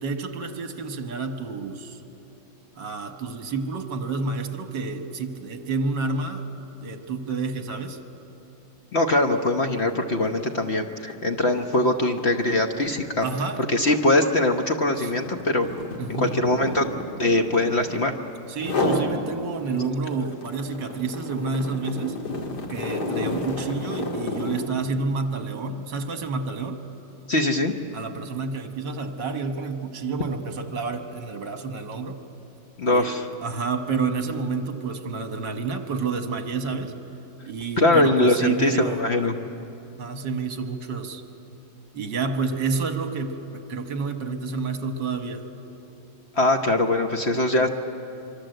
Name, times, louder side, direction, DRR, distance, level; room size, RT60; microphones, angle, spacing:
voice 1, 0.0-2.0 2.8-6.5 6.8-8.0 13.2-13.7 15.0-15.1 16.0-16.4 18.5-22.2 22.7-26.8 27.9-32.2 32.8-33.1 33.4-36.9 37.4-39.1 40.0-41.2 41.9-45.4, right 4 dB, 70° right, 7 dB, 2.1 m, -29 dB
voice 2, 8.9-13.3 13.7-15.7 16.2-16.9 17.2-18.1 27.3-27.7 32.8-33.3 37.8-39.3 46.3-47.7, left 2 dB, 40° left, 4 dB, 1.1 m, -22 dB
sound 1, 9.1-9.3 9.6-18.1 18.5-19.1 19.6-24.7, left 2 dB, 60° left, 2.8 m, -31 dB
25.5 x 24.0 x 7.9 m, 2.8 s
omnidirectional pair, 2.0 m